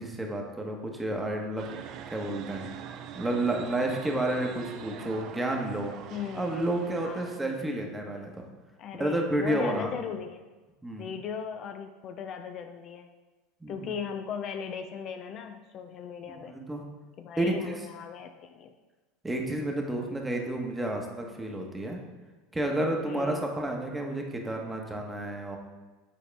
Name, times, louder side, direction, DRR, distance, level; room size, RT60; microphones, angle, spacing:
voice 1, 0.0-1.7 2.1-2.7 3.1-5.9 6.3-8.4 9.0-9.9 10.8-11.1 13.6-13.9 16.3-16.8 17.4-17.7 19.2-22.0 22.5-25.6, right 1 dB, 10° right, 1 dB, 1.1 m, -30 dB
sound 1, 1.6-7.4, right 8 dB, 55° right, 0.4 m, -43 dB
voice 2, 6.1-6.6 7.0-7.3 8.8-10.4 11.0-13.1 13.7-16.6 17.2-18.7 23.1-23.5, left 7 dB, 45° left, 6 dB, 0.4 m, -38 dB
7.3 x 4.1 x 3.4 m, 1.2 s
hypercardioid pair, 100°, 0 cm